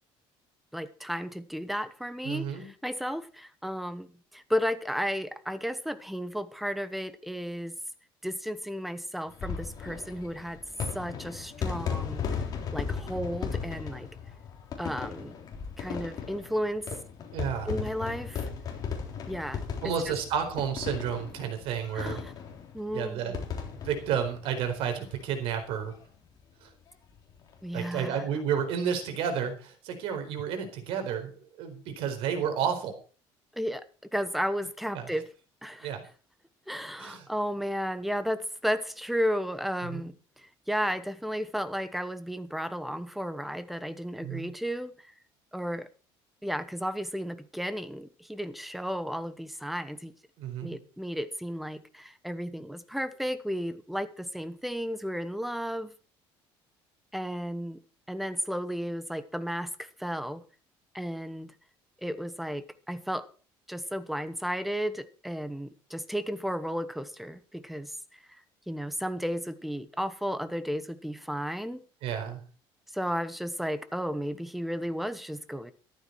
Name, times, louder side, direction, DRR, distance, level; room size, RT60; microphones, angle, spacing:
voice 1, 0.7-4.1 4.3-7.8 8.2-10.6 10.9-12.4 12.7-14.1 14.8-15.4 15.8-16.9 17.7-18.5 19.3-20.1 21.9-22.3 22.7-23.4 27.6-28.3 33.5-33.8 34.1-35.3 35.6-35.9 36.7-45.0 45.5-45.9 46.4-50.1 50.6-55.9 57.1-57.8 58.1-60.4 60.9-61.5 62.0-63.3 63.7-68.4 68.7-71.8 72.9-75.7, equal, ahead, 12 dB, 1.1 m, -33 dB
voice 2, 2.2-2.7 17.3-17.8 19.8-22.2 22.9-23.4 23.8-25.9 26.6-26.7 27.7-32.9 34.9-35.1 35.8-36.0 37.0-37.3 39.8-40.1 44.2-44.5 50.4-50.8 72.0-72.4, right 8 dB, 70° right, 7 dB, 4.4 m, -31 dB
sound 1, 9.3-25.3 25.6-25.7 25.9-26.0 27.3-27.5, left 6 dB, 40° left, 3.7 m, -36 dB
14.0 x 12.0 x 4.7 m, 0.38 s
cardioid pair, 150°, 10 cm